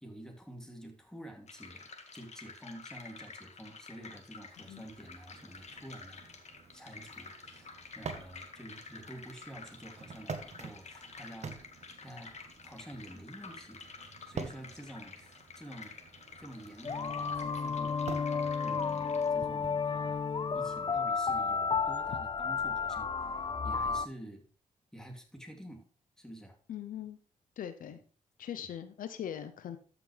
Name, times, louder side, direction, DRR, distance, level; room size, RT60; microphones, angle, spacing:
voice 1, 0.0-6.3 6.7-12.3 12.6-13.8 14.3-16.0 16.4-20.2 20.5-24.4 24.9-25.8 26.2-26.6 27.9-28.0 28.6-28.7, right 1 dB, 5° left, 2 dB, 2.7 m, -49 dB
sound 1, 1.5-19.3, left 4 dB, 55° left, 1.9 m, -50 dB
sound 2, 4.3-20.9, right 5 dB, 55° right, 1.3 m, -48 dB
sound 3, 16.8-24.1, left 5 dB, 35° left, 0.5 m, -32 dB
voice 2, 26.7-27.2 27.6-28.0 28.4-29.8, left 9 dB, 80° left, 10 dB, 0.7 m, -40 dB
13.0 x 6.0 x 3.3 m, 0.41 s
cardioid pair, 70°, 14 cm